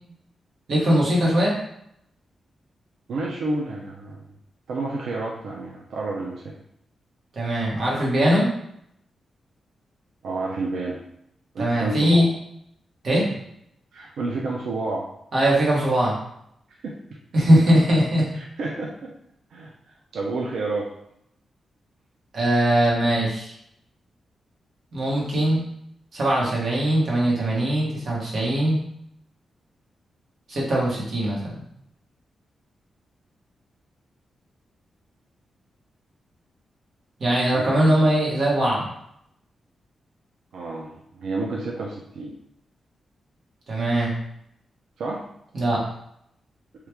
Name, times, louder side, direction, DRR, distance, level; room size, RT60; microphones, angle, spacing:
voice 1, 0.7-1.5 7.4-8.5 11.6-12.3 13.0-13.3 15.3-16.2 17.3-18.3 22.3-23.5 24.9-25.6 26.1-28.8 30.5-31.4 37.2-38.9 43.7-44.1 45.5-45.8, right 1 dB, 50° right, -5 dB, 1.1 m, -20 dB
voice 2, 3.1-4.3 4.7-6.5 10.2-11.0 11.5-12.2 13.9-15.1 16.8-17.0 18.6-19.1 19.5-19.7 20.1-20.9 37.5-38.0 40.5-42.4 45.0-45.2, right 2 dB, 90° right, -2 dB, 0.4 m, -30 dB
3.0 x 2.4 x 3.3 m, 0.74 s
wide cardioid pair, 170°, 0 cm